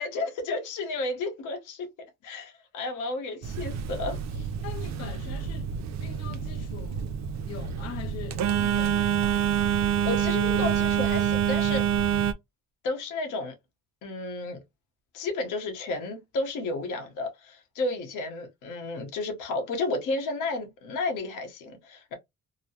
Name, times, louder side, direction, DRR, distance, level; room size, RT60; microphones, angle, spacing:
voice 1, 0.0-1.9 2.2-4.5 10.0-11.8 12.8-13.5 14.0-14.6 15.1-22.1, left 3 dB, 90° left, 1.0 m, -32 dB
Telephone, 3.4-12.3, right 9 dB, 65° right, 0.5 m, -27 dB
voice 2, 4.6-5.7 6.0-7.1 7.5-9.4, left 10 dB, 55° left, 0.5 m, -42 dB
3.0 x 2.1 x 2.7 m
cardioid pair, 90°, 30 cm